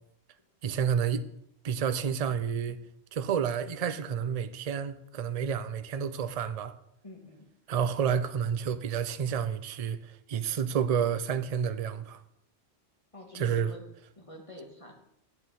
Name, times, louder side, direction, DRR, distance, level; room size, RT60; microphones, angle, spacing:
voice 1, 0.6-1.3 1.6-2.8 3.2-6.7 7.7-12.2 13.3-13.7, right 7 dB, 45° right, 0.5 m, -30 dB
voice 2, 7.0-7.5 13.1-13.8 14.2-14.9, left 1 dB, 30° left, 1.5 m, -47 dB
8.8 x 8.1 x 4.2 m
omnidirectional pair, 1.1 m